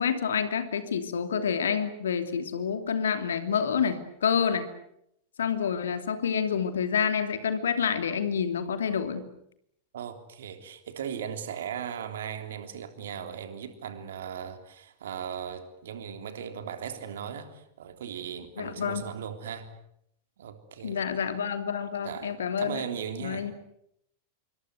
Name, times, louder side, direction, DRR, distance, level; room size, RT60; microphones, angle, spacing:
voice 1, 0.0-4.7 5.4-9.2 18.6-19.0 20.8-22.8 23.2-23.5, left 7 dB, 65° left, 9 dB, 2.9 m, -28 dB
voice 2, 9.9-19.7 20.4-21.0 22.0-23.5, right 8 dB, 60° right, 8 dB, 3.5 m, -38 dB
27.0 x 24.0 x 8.2 m, 0.75 s
figure-of-eight pair, 90°, 0 cm